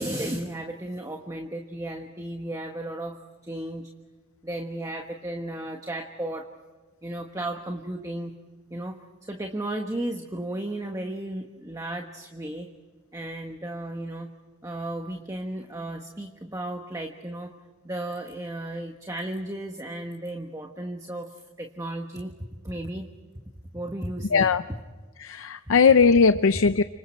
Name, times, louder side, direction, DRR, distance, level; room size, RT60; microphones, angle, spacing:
voice 1, 0.0-3.9 4.4-6.5 7.0-8.3 8.7-9.0 9.3-12.7 13.1-14.3 14.6-17.5 17.8-22.3 22.6-23.1 23.7-24.5, right 1 dB, 15° right, 3 dB, 1.3 m, -34 dB
voice 2, 24.3-24.6 25.2-26.8, left 5 dB, 70° left, 11 dB, 0.6 m, -19 dB
30.0 x 26.0 x 4.5 m, 1.3 s
head